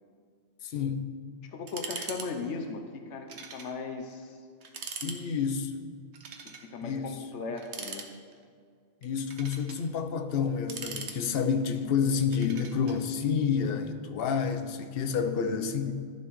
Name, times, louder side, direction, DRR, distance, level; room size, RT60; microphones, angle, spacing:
voice 1, 0.6-1.0 5.0-5.8 6.8-7.2 9.0-15.9, left 6 dB, 60° left, 7 dB, 0.8 m, -29 dB
voice 2, 1.5-4.4 6.4-8.1 15.1-15.9, left 4 dB, 85° left, 5 dB, 1.0 m, -38 dB
sound 1, 1.7-2.3 2.5-2.7 3.3-3.7 4.1-4.2 4.6-5.2 6.1-6.7 7.6-8.4 9.0-9.8 10.5-11.6 12.3-13.0, right 5 dB, 70° right, 1.1 m, -41 dB
11.5 x 6.9 x 3.1 m, 2.1 s
omnidirectional pair, 1.2 m